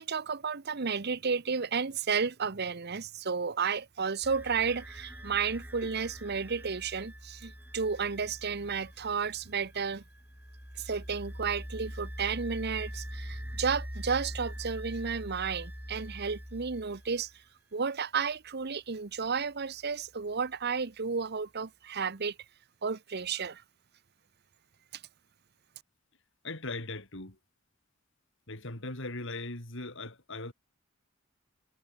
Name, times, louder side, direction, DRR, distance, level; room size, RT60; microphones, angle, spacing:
voice 1, 0.0-10.0 10.8-17.3 17.7-22.3 22.8-23.6, right 5 dB, 50° right, 0.9 m, -32 dB
sound 1, 4.2-17.3, equal, 10° right, 4.3 m, -43 dB
voice 2, 26.4-27.4 28.5-30.5, left 2 dB, 65° left, 4.5 m, -39 dB
head